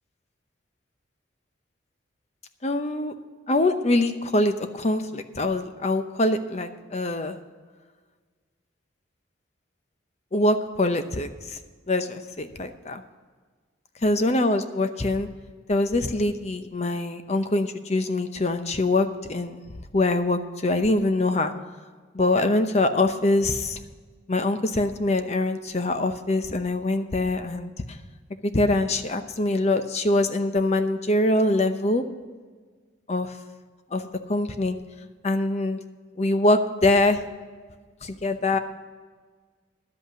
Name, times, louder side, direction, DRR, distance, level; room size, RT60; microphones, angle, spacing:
voice 1, 2.6-3.1 3.5-7.3 10.3-11.6 11.9-13.0 14.0-15.3 15.7-19.6 19.9-21.5 22.1-23.8 24.3-27.7 28.4-32.0 33.1-33.3 33.9-34.8 35.2-35.8 36.2-37.2 38.0-38.6, left 2 dB, 35° left, 8 dB, 0.8 m, -24 dB
11.5 x 8.1 x 6.2 m, 1.5 s
head